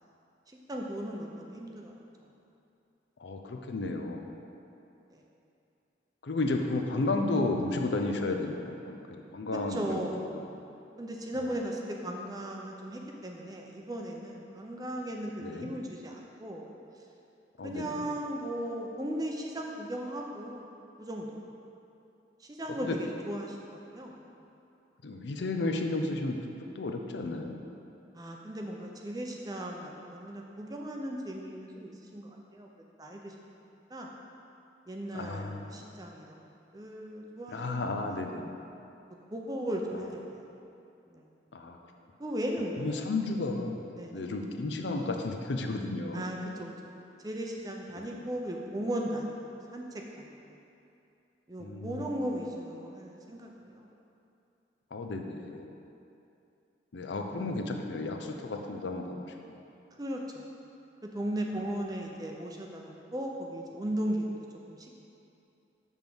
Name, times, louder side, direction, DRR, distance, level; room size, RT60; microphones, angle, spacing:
voice 1, 0.7-2.0 5.1-5.2 9.7-10.2 11.0-16.7 17.6-20.7 21.0-21.4 22.4-24.2 28.1-32.7 33.0-33.3 33.9-34.1 34.9-36.4 36.7-38.2 39.3-40.4 41.1-41.3 42.2-43.1 43.9-44.2 46.1-46.7 47.2-49.4 49.7-50.4 51.5-53.9 60.0-60.4 61.1-64.3 64.7-64.9, right 1 dB, 20° right, 0 dB, 0.5 m, -37 dB
voice 2, 3.2-4.4 6.2-10.0 10.3-10.6 15.4-15.7 17.6-18.1 22.8-23.0 25.0-26.4 26.8-27.6 35.1-35.9 37.5-38.6 41.5-41.8 42.8-43.8 44.1-46.3 48.0-48.1 51.6-52.1 54.9-55.8 56.9-59.3, left 2 dB, 75° left, 4 dB, 0.5 m, -33 dB
7.0 x 3.6 x 6.0 m, 2.7 s
head